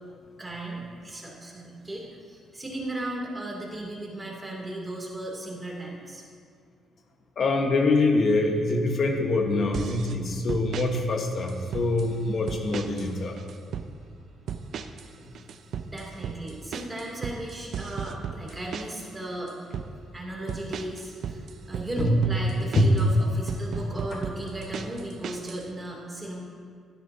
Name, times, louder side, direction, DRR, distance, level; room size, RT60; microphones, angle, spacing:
voice 1, 0.4-6.2 15.8-19.5 20.1-26.4, right 1 dB, 15° right, -3 dB, 2.7 m, -36 dB
voice 2, 7.4-13.4 22.0-22.2 22.5-23.0, left 2 dB, 55° left, 3 dB, 1.3 m, -24 dB
sound 1, 9.7-10.2 10.5-10.9 11.5-12.1 12.5-13.1 13.4-13.9 14.5-15.1 15.3-19.1 19.5-19.9 20.5-23.1 23.5-25.6, right 7 dB, 65° right, 0.5 m, -35 dB
12.5 x 10.5 x 2.8 m, 2.1 s
cardioid pair, 90°, 0 cm